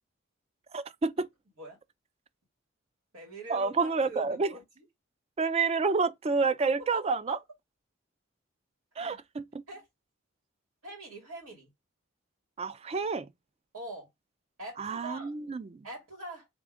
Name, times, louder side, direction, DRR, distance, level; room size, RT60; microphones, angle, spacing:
voice 1, 0.7-1.3 3.5-4.5 5.4-7.4 9.0-9.4 12.6-13.3 14.8-15.8, right 4 dB, 30° right, 0.3 m, -29 dB
voice 2, 3.1-4.8 6.8-7.4 9.0-9.2 9.7-9.9 10.8-11.7 13.7-14.1 14.6-15.3 15.8-16.5, right 1 dB, 90° right, 2.8 m, -44 dB
3.7 x 3.4 x 3.6 m
head